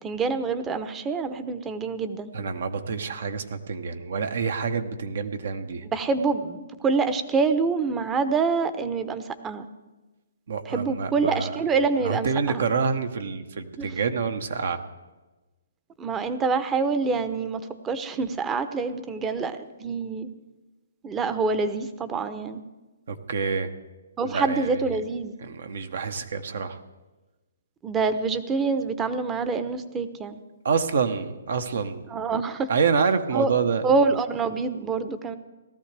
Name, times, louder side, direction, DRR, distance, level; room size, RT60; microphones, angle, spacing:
voice 1, 0.0-2.3 5.9-9.7 10.7-12.6 13.8-13.9 16.0-20.3 21.0-22.6 24.2-25.3 27.8-30.4 32.1-32.7 33.3-33.5 33.8-35.4, right 4 dB, 15° right, 11 dB, 0.7 m, -26 dB
voice 2, 2.3-5.9 10.5-11.6 12.0-14.8 23.1-23.7 24.2-24.8 25.4-26.8 30.6-32.0 32.7-33.8, right 5 dB, 65° right, 9 dB, 1.0 m, -27 dB
18.0 x 13.5 x 3.4 m, 1.2 s
hypercardioid pair, 145°, 0 cm